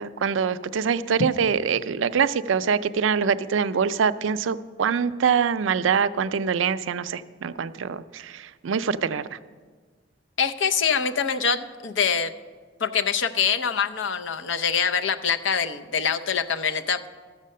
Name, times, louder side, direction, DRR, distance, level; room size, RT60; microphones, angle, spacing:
voice 1, 0.0-9.4, right 6 dB, 80° right, 13 dB, 0.4 m, -24 dB
voice 2, 10.4-12.3 12.8-17.1, left 6 dB, 70° left, 8 dB, 0.6 m, -24 dB
12.5 x 7.4 x 6.5 m, 1.5 s
head